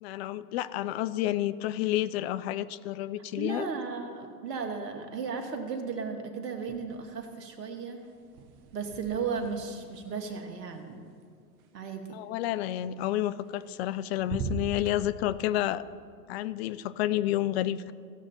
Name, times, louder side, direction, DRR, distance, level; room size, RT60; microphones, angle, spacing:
voice 1, 0.0-3.7 12.1-15.8 16.3-17.9, left 13 dB, 45° left, 16 dB, 0.4 m, -30 dB
voice 2, 3.4-8.0 8.7-11.0 11.7-12.1, right 5 dB, 80° right, 5 dB, 1.5 m, -35 dB
sound 1, 6.6-7.3 7.6-11.7 13.3-13.9 14.2-15.0, right 4 dB, 60° right, 1.2 m, -41 dB
16.5 x 6.5 x 4.3 m, 2.3 s
hypercardioid pair, 105°, 48 cm